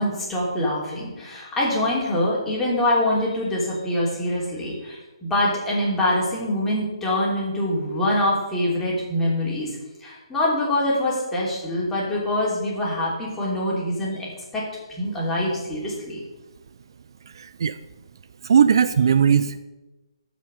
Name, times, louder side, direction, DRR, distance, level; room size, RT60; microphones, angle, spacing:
voice 1, 0.0-9.7 10.0-16.2, left 1 dB, 5° left, -6 dB, 3.2 m, -24 dB
voice 2, 17.3-17.8 18.4-19.6, right 7 dB, 55° right, 13 dB, 0.4 m, -18 dB
14.0 x 5.1 x 5.4 m, 1.1 s
figure-of-eight pair, 140°, 3 cm